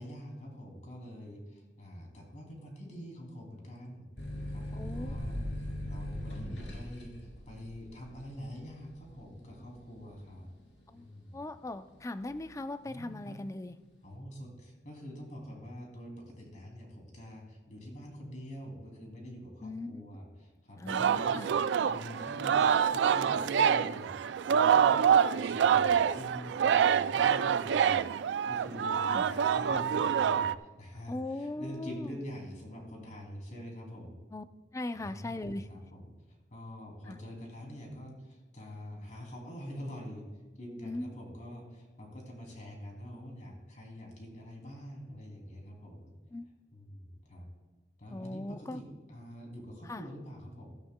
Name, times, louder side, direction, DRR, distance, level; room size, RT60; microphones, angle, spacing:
voice 1, 0.0-4.1 4.5-10.5 10.9-11.5 12.9-13.4 14.0-24.2 24.5-34.2 34.9-40.3 40.6-46.1 46.7-47.5 48.0-50.7, equal, 45° left, 1 dB, 2.7 m, -46 dB
sound 1, 4.2-11.4 11.9-12.6, left 1 dB, 90° left, 3.3 m, -41 dB
voice 2, 4.8-5.1 10.9-11.1 11.3-13.8 19.6-19.9 20.8-21.5 29.1-29.2 31.1-32.2 34.3-34.4 34.7-35.7 37.1-37.2 40.8-41.1 46.3-46.5 48.1-48.8 49.9-50.0, left 2 dB, 20° left, 11 dB, 0.4 m, -39 dB
sound 2, 4.9-10.4, equal, 30° right, 2.4 m, -46 dB
Singing, 20.9-30.5, right 8 dB, 80° right, 0.3 m, -26 dB
16.0 x 13.0 x 2.2 m, 1.2 s
head